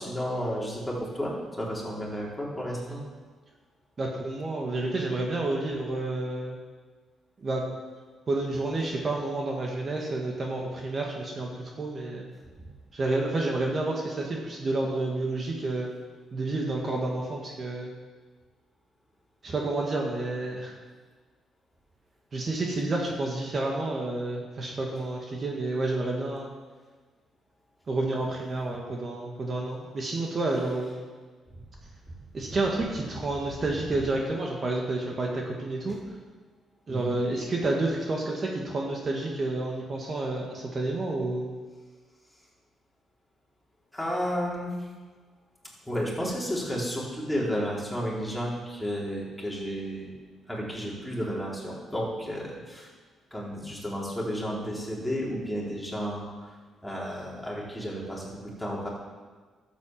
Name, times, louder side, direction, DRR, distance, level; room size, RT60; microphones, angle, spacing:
voice 1, 0.0-3.0 32.5-32.6 35.9-36.0 36.9-37.2 43.9-44.9 45.9-50.1 50.5-52.9 53.3-56.5 56.8-58.9, equal, 5° left, -5 dB, 4.3 m, -32 dB
voice 2, 4.0-6.6 7.4-7.6 8.3-12.3 12.9-15.9 16.3-17.9 19.4-20.7 22.3-26.5 27.9-31.1 32.3-36.0 36.9-41.5, right 2 dB, 40° right, 0 dB, 2.0 m, -30 dB
12.0 x 8.1 x 7.6 m, 1.4 s
cardioid pair, 90°, 0 cm